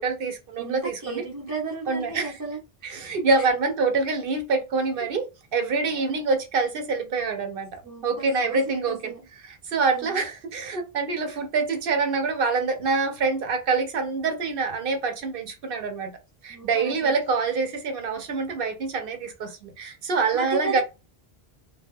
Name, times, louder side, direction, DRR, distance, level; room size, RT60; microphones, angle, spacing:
voice 1, 0.0-1.2 1.9-2.3 2.8-5.3 5.5-9.1 9.4-16.1 16.4-20.8, right 4 dB, 65° right, 0.8 m, -26 dB
voice 2, 0.6-2.6 3.4-3.5 5.0-5.1 5.9-6.2 7.8-9.2 9.9-10.2 11.1-11.2 16.5-17.1 20.3-20.8, right 5 dB, 25° right, 0.4 m, -34 dB
2.4 x 2.2 x 3.2 m
omnidirectional pair, 1.1 m